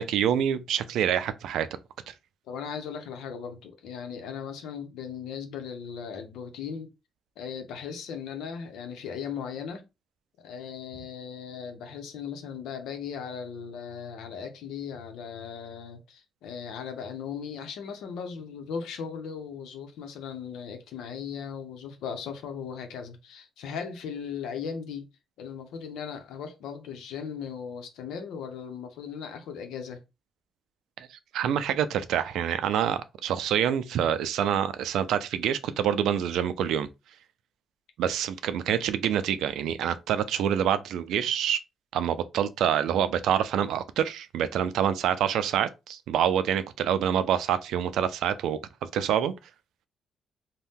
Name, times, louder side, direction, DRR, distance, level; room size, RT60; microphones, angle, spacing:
voice 1, 0.0-1.7 2.1-2.2 31.0-36.9 38.0-41.6 41.9-48.6 48.9-49.3, right 9 dB, 80° right, 0.4 m, -26 dB
voice 2, 2.5-6.9 7.4-9.8 10.4-25.1 25.4-30.0, left 7 dB, 85° left, 0.8 m, -37 dB
2.7 x 2.2 x 3.5 m
cardioid pair, 90°, 0 cm